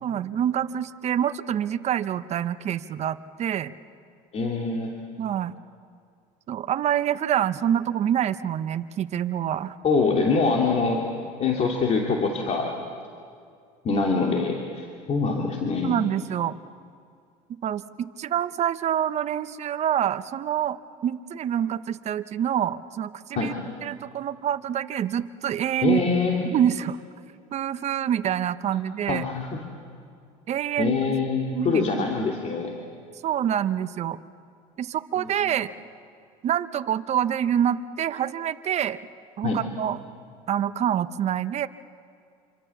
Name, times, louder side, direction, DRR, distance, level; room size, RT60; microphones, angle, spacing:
voice 1, 0.0-3.7 5.2-5.5 6.5-9.7 15.8-16.6 17.6-20.8 21.0-23.5 23.8-26.0 26.4-27.0 27.5-29.2 30.5-31.0 31.5-32.1 33.2-34.2 34.8-35.7 36.4-39.0 39.4-40.0 40.5-41.7, right 10 dB, 40° right, 12 dB, 0.9 m, -26 dB
voice 2, 4.3-4.9 9.8-11.0 11.4-12.7 13.8-16.0 23.4-23.5 25.8-26.4 29.1-29.5 30.8-32.7 35.2-35.5 39.4-39.6, left 4 dB, 40° left, -1 dB, 3.0 m, -24 dB
26.5 x 26.0 x 7.3 m, 2.3 s
supercardioid pair, 95°, 17 cm